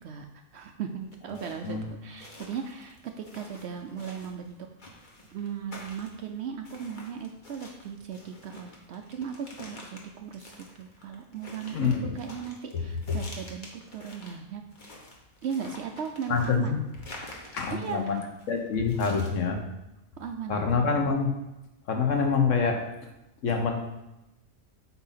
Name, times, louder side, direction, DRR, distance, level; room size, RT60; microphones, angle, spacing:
voice 1, 0.0-4.6 5.3-14.6 15.4-16.8 17.7-18.1 20.2-21.2, right 7 dB, 65° right, 5 dB, 0.7 m, -37 dB
sound 1, 0.9-19.4, left 2 dB, 40° left, 1.2 m, -48 dB
voice 2, 1.3-1.9 11.7-12.1 12.7-12.8 13.1-13.2 16.3-16.8 17.5-18.2 18.5-19.6 20.5-21.3 21.9-22.8 23.4-23.8, left 5 dB, 65° left, 3 dB, 1.2 m, -26 dB
8.2 x 2.8 x 5.5 m, 0.94 s
omnidirectional pair, 1.4 m